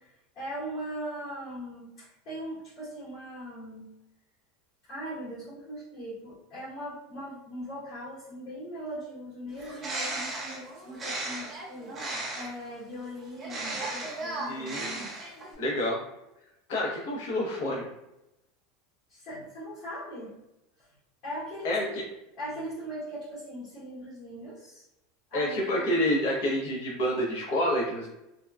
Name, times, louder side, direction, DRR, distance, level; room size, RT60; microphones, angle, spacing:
voice 1, 0.0-3.9 4.9-15.0 19.1-20.4 20.8-21.0 21.2-22.0 22.4-24.9 25.3-25.9, equal, 55° left, -10 dB, 1.2 m, -40 dB
Bird, 9.5-12.7 13.4-15.6, right 2 dB, 25° right, 0.8 m, -36 dB
voice 2, 14.5-15.1 15.6-16.0 16.7-17.8 21.6-22.0 25.3-28.1, left 1 dB, 75° left, -4 dB, 0.8 m, -28 dB
2.8 x 2.2 x 2.3 m, 0.90 s
supercardioid pair, 125°, 0 cm